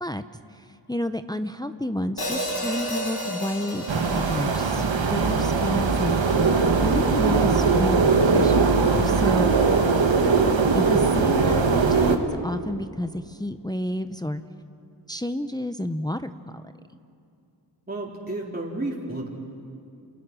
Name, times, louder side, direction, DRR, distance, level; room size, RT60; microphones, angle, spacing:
voice 1, 0.9-6.5 6.8-9.6 10.7-14.4 15.1-16.3, left 1 dB, 10° left, 9 dB, 0.8 m, -30 dB
Hi-hat, 2.2-6.4, equal, 55° left, 5.6 m, -33 dB
sound 1, 3.9-12.2, right 4 dB, 80° right, 1.7 m, -20 dB
voice 2, 17.9-19.3, right 2 dB, 20° right, -4 dB, 4.3 m, -32 dB
29.0 x 27.5 x 6.3 m, 2.6 s
wide cardioid pair, 65°, 45 cm